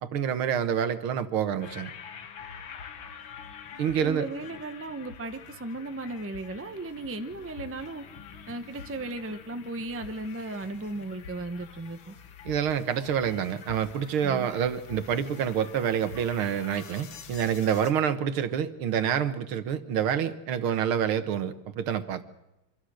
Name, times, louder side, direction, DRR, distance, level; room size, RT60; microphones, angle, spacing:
voice 1, 0.0-1.9 3.8-4.2 12.5-22.2, right 8 dB, 80° right, 10 dB, 2.1 m, -27 dB
sound 1, 1.6-17.9, left 7 dB, 70° left, 2.2 m, -46 dB
voice 2, 4.0-8.0 8.5-12.1 14.2-14.5, right 2 dB, 10° right, 8 dB, 0.6 m, -36 dB
25.5 x 23.5 x 6.4 m, 0.95 s
omnidirectional pair, 2.3 m